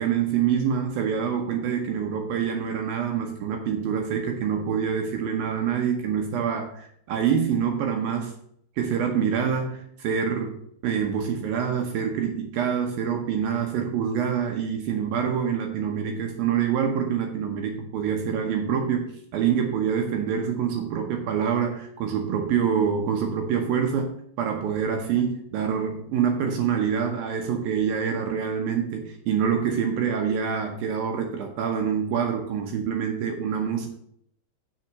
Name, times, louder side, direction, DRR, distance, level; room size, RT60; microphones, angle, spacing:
voice 1, 0.0-8.3 8.8-10.6 10.8-33.9, right 7 dB, 75° right, 3 dB, 2.3 m, -26 dB
7.6 x 6.4 x 6.5 m, 0.68 s
omnidirectional pair, 5.2 m